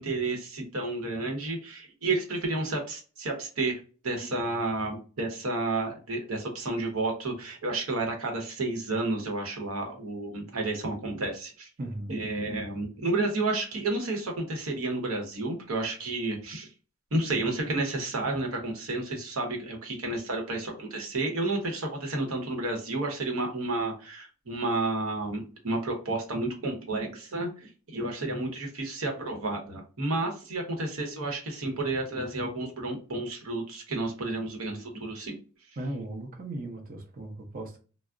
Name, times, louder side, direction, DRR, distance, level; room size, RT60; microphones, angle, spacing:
voice 1, 0.0-11.7 12.1-16.7 17.1-35.4, right 2 dB, 70° right, 0.9 m, -31 dB
voice 2, 11.8-12.1 35.8-37.8, right 1 dB, 40° right, 0.7 m, -37 dB
2.3 x 2.0 x 3.6 m
head